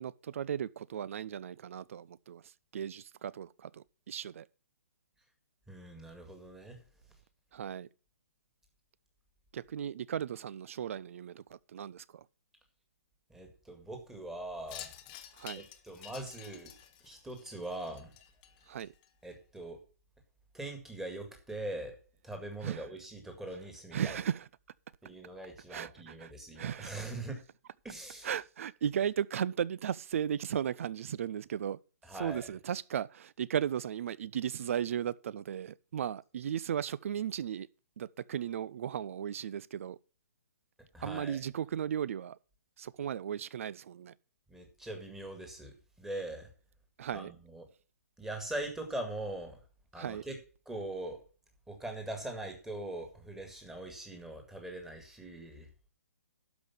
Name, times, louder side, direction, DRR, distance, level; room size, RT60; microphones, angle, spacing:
voice 1, 0.0-4.5 7.5-7.9 9.5-12.2 15.3-15.6 18.7-18.9 22.6-22.8 23.9-24.5 25.7-27.0 28.2-31.8 32.1-37.7 38.0-40.0 41.0-42.4 42.8-44.1 47.0-47.3 50.0-50.2, right 9 dB, 55° right, 0.5 m, -36 dB
voice 2, 5.7-6.8 13.3-14.9 15.6-16.7 17.0-18.1 19.2-19.8 20.5-22.0 22.2-24.2 25.0-27.4 27.8-28.3 32.1-32.5 40.9-41.4 44.5-46.5 47.1-47.7 48.2-49.6 49.9-50.4 50.7-51.2 51.7-55.7, right 1 dB, 5° right, 2.0 m, -42 dB
Wind chime, 14.7-19.3, left 11 dB, 25° left, 1.0 m, -50 dB
12.0 x 5.2 x 7.1 m
hypercardioid pair, 155°, 9 cm